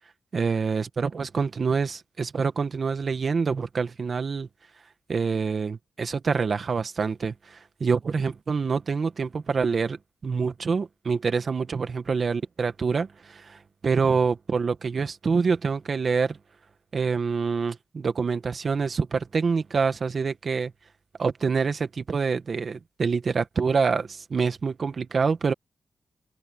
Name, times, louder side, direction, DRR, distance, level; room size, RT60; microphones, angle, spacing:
voice 1, 0.3-4.5 5.1-10.0 10.2-16.4 16.9-20.7 21.2-25.5, right 5 dB, 55° right, 1.8 m, -26 dB
cardioid pair, 85°, 0 cm